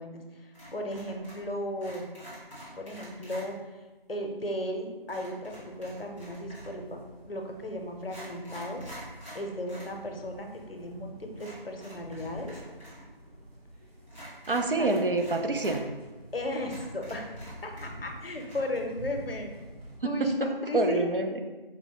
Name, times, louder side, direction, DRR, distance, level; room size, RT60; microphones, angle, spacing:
voice 1, 0.0-2.1 2.8-3.8 4.1-7.0 7.2-8.9 9.3-12.6 14.8-14.9 16.3-17.3 17.6-19.5 20.0-21.1, left 1 dB, 70° left, 3 dB, 0.7 m, -35 dB
sound 1, 0.5-1.5 1.8-3.5 5.1-6.8 7.5-7.6 8.0-9.9 10.2-10.3 11.4-13.0 13.3-13.4 14.1-15.8 16.3-16.4 16.6-18.1 18.4-18.6, equal, 35° right, 1.3 m, -47 dB
sound 2, 5.5-20.0, equal, 90° right, 1.0 m, -48 dB
voice 2, 14.5-15.8 20.0-20.5 20.7-21.4, right 2 dB, 65° right, 5 dB, 0.5 m, -27 dB
4.9 x 2.1 x 2.9 m, 1.2 s
figure-of-eight pair, 180°, 30 cm